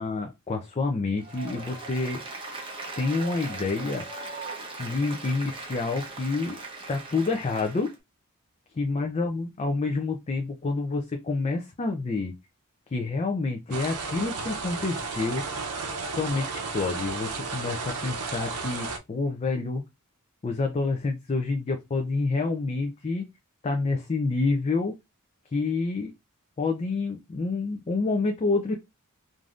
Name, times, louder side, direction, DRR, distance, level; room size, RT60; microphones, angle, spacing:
voice 1, 0.0-2.2 3.0-4.0 4.8-6.6 6.9-7.9 8.8-12.3 12.9-15.4 16.1-19.8 20.4-23.2 23.6-24.9 25.5-26.1 26.6-28.7, left 3 dB, 30° left, 3 dB, 0.4 m, -28 dB
Applause, 1.2-7.9, right 3 dB, 25° right, 0.8 m, -39 dB
sound 1, 13.7-19.0, right 4 dB, 80° right, 0.6 m, -33 dB
3.3 x 2.6 x 2.4 m, 0.22 s
head